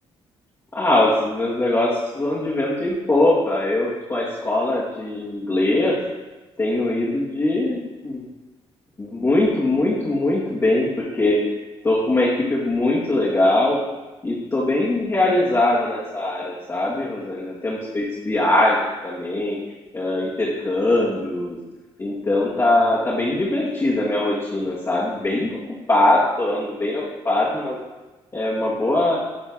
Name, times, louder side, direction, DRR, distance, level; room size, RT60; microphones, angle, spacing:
voice 1, 0.7-6.0 6.6-8.2 9.0-11.4 11.8-13.8 14.2-19.6 19.9-21.6 22.0-25.6 25.9-27.8 28.3-29.2, left 2 dB, 30° left, -8 dB, 1.9 m, -21 dB
11.0 x 4.0 x 3.6 m, 1.1 s
cardioid pair, 80°, 11 cm